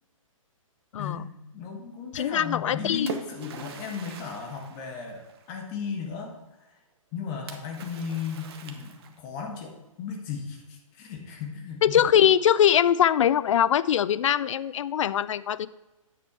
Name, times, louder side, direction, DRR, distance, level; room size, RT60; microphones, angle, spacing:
voice 1, 1.5-5.2 5.5-6.3 7.1-12.0, left 6 dB, 30° left, 1 dB, 1.5 m, -35 dB
voice 2, 2.1-3.1 11.8-15.7, left 9 dB, 65° left, 18 dB, 0.4 m, -22 dB
Splash splatter, 2.5-5.7 7.5-9.4, right 5 dB, 45° right, 1.0 m, -42 dB
9.2 x 6.2 x 4.3 m, 1.0 s
hypercardioid pair, 130°, 18 cm